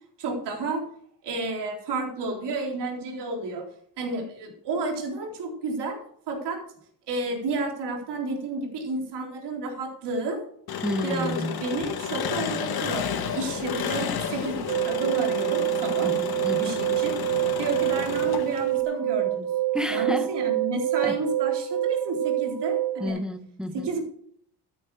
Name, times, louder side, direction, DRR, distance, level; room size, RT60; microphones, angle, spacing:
voice 1, 0.2-0.9 1.2-3.7 4.0-6.0 6.3-6.6 7.1-10.4 11.0-16.1 16.6-17.2 17.6-19.5 19.9-23.2 23.7-24.0, right 3 dB, 70° right, 0 dB, 4.0 m, -31 dB
Engine, 10.7-18.8, left 7 dB, 60° left, 1.9 m, -31 dB
voice 2, 10.8-11.6 16.0-16.7 19.7-20.3 21.0-21.2 23.0-23.9, equal, ahead, 6 dB, 1.2 m, -31 dB
sound 1, 14.7-23.1, right 14 dB, 25° right, 3.0 m, -26 dB
13.5 x 10.0 x 4.9 m, 0.62 s
cardioid pair, 140°, 42 cm